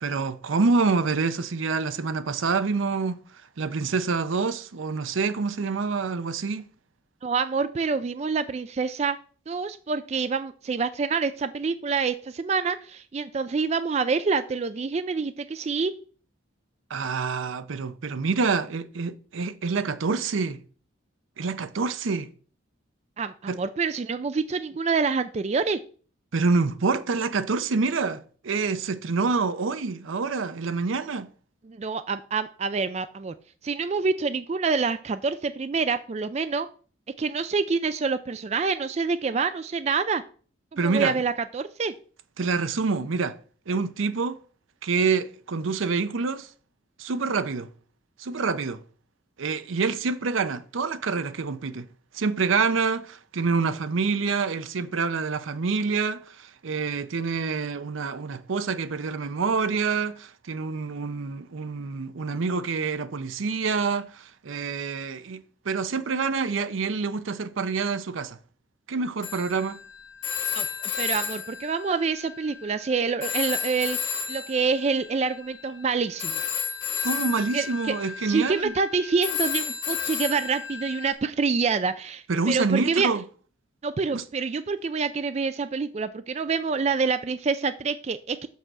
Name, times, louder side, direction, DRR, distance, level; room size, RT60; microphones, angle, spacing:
voice 1, 0.0-3.2 3.6-6.7 16.9-20.6 21.4-22.3 23.5-23.6 26.3-31.3 40.8-41.2 42.4-43.4 43.7-44.4 44.8-46.5 47.0-47.7 48.2-48.8 49.4-51.9 52.1-68.4 68.9-69.8 77.0-78.7 82.3-83.2 84.1-84.2, right 4 dB, 75° right, 0.6 m, -27 dB
voice 2, 7.2-9.2 9.5-15.9 23.2-25.8 31.7-33.3 33.6-36.7 37.2-40.2 40.7-41.9 70.5-76.4 77.5-78.0 78.2-83.1 83.8-88.5, right 5 dB, 35° right, 0.3 m, -27 dB
Telephone, 69.2-72.9 73.2-81.1, left 8 dB, 75° left, 1.2 m, -32 dB
6.4 x 5.4 x 6.1 m
head